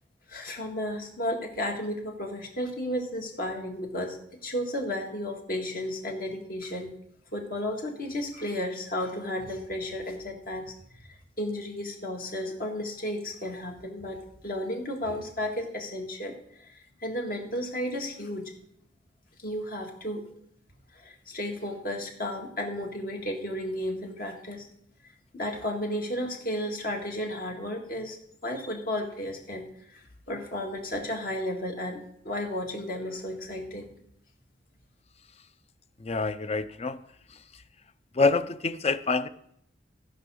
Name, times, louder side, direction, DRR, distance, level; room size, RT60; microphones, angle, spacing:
voice 1, 0.3-4.2 4.4-6.9 7.3-18.5 19.4-20.2 20.9-24.7 25.3-28.2 28.4-33.9, left 1 dB, 55° left, 2 dB, 1.9 m, -33 dB
voice 2, 36.0-37.0 38.1-39.3, left 3 dB, 35° left, 13 dB, 0.5 m, -26 dB
14.0 x 5.2 x 6.3 m, 0.70 s
head